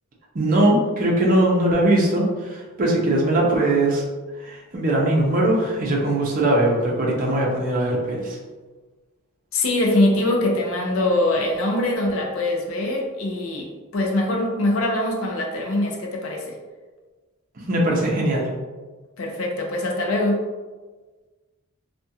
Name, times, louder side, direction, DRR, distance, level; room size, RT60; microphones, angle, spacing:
voice 1, 0.3-4.1 4.4-8.4 17.6-18.5, right 1 dB, 40° right, -2 dB, 0.5 m, -20 dB
voice 2, 9.5-16.5 19.2-20.5, left 1 dB, 70° left, 0 dB, 0.5 m, -23 dB
2.4 x 2.1 x 2.7 m, 1.3 s
head